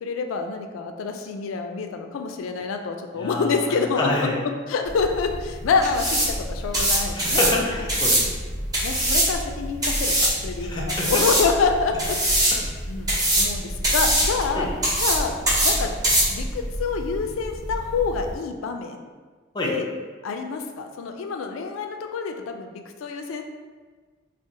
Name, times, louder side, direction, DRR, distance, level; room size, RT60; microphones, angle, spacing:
voice 1, 0.0-4.3 4.7-7.4 7.8-7.9 8.3-8.4 8.8-12.2 12.9-13.1 13.4-14.7 15.0-15.3 15.6-15.9 16.3-19.1 19.6-19.9 20.2-23.4, left 5 dB, 85° left, 5 dB, 0.3 m, -27 dB
voice 2, 3.2-4.4 7.1-8.4 10.6-11.1 14.5-14.7 19.5-19.7, left 2 dB, 20° left, -3 dB, 0.5 m, -27 dB
sound 1, 4.9-18.3, right 1 dB, 20° right, 0.7 m, -24 dB
2.6 x 2.0 x 3.8 m, 1.4 s
head